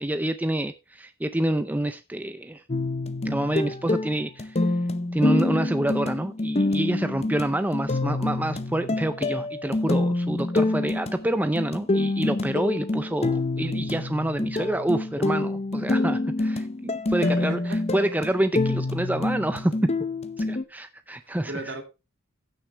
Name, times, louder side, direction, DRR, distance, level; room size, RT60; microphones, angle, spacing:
voice 1, 0.0-2.6 3.2-4.6 5.1-17.6 17.9-19.9 20.4-21.5, right 1 dB, 10° right, 0.5 m, -27 dB
sound 1, 2.7-20.6, left 2 dB, 30° left, 0.7 m, -27 dB
voice 2, 17.2-17.8 21.3-21.8, right 2 dB, 60° right, 2.7 m, -36 dB
15.5 x 6.4 x 3.4 m
head